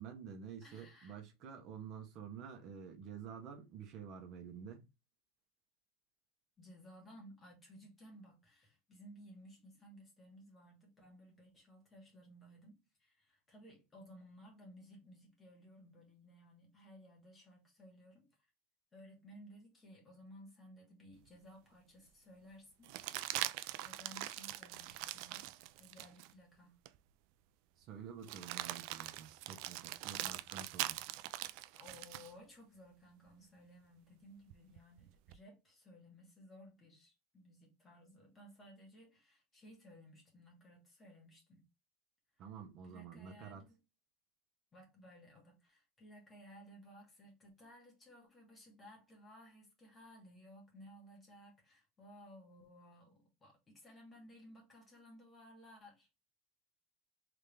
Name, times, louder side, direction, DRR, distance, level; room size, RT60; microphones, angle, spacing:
voice 1, 0.0-4.8 27.8-31.0 42.4-43.6, right 7 dB, 40° right, 1.0 m, -49 dB
voice 2, 0.6-1.2 6.6-18.3 18.9-22.9 23.3-25.4 25.8-26.8 31.7-41.6 42.8-43.8 44.7-56.1, equal, 15° left, 1.6 m, -58 dB
sound 1, 21.3-21.4 22.8-26.3 26.8-27.0 28.2-32.3 34.5-35.4, right 16 dB, 55° right, 0.3 m, -42 dB
3.7 x 3.4 x 3.3 m
cardioid pair, 170°, 0 cm